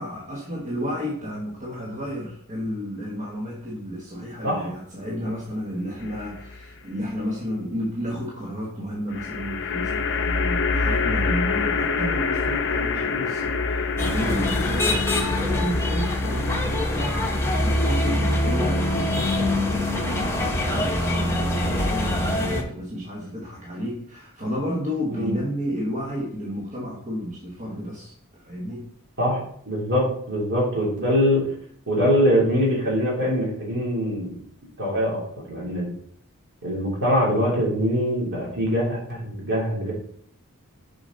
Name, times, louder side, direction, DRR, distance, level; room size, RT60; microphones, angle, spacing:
voice 1, 0.0-28.9, equal, 35° right, -3 dB, 1.3 m, -32 dB
sound 1, 6.0-6.6 9.1-20.5, left 4 dB, 55° left, 0.6 m, -28 dB
sound 2, 14.0-22.6, left 1 dB, 10° left, 0.9 m, -24 dB
voice 2, 29.7-31.5 31.9-34.3 34.8-35.2 35.5-35.9 36.6-39.9, equal, 55° right, -4 dB, 3.2 m, -23 dB
6.9 x 5.6 x 3.9 m, 0.65 s
head